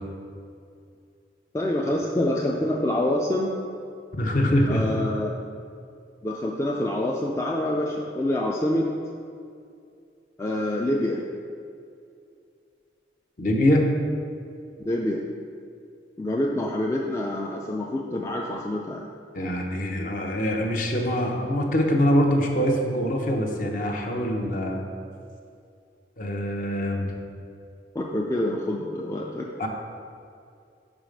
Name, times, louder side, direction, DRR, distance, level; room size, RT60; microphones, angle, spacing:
voice 1, 1.5-3.5 4.7-5.3 6.2-8.9 10.4-11.2 14.8-15.2 16.2-19.1 27.9-29.5, left 1 dB, 15° left, -1 dB, 0.3 m, -26 dB
voice 2, 4.1-4.9 13.4-13.9 19.3-24.8 26.2-27.1 29.6-29.7, equal, 45° left, 1 dB, 0.8 m, -24 dB
5.7 x 4.9 x 5.1 m, 2.4 s
head